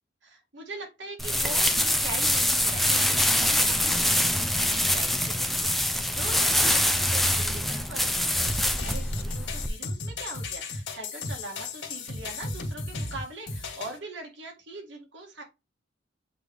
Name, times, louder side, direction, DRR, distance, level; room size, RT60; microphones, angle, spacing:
voice 1, 0.2-15.4, right 2 dB, 70° right, -1 dB, 2.0 m, -42 dB
sound 1, 1.2-9.7, left 1 dB, ahead, 0.6 m, -24 dB
sound 2, 8.4-14.0, left 3 dB, 70° left, 2.0 m, -35 dB
8.1 x 3.3 x 3.6 m, 0.26 s
head